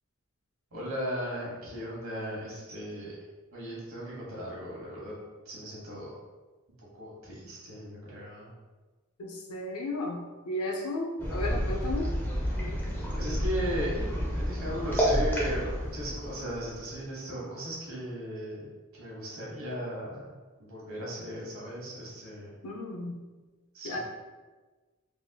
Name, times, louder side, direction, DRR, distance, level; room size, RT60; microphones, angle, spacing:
voice 1, 0.7-3.1 3.5-5.1 5.4-6.1 6.9-8.5 13.1-13.9 14.3-18.7 18.9-20.3 20.6-22.5 23.7-24.0, equal, 80° right, -4 dB, 1.0 m, -37 dB
voice 2, 9.2-12.1 22.6-23.2 23.8-24.0, left 1 dB, 85° left, 0 dB, 0.5 m, -34 dB
sound 1, 11.2-17.0, equal, 10° left, 0.5 m, -30 dB
3.3 x 2.7 x 2.2 m, 1.3 s
head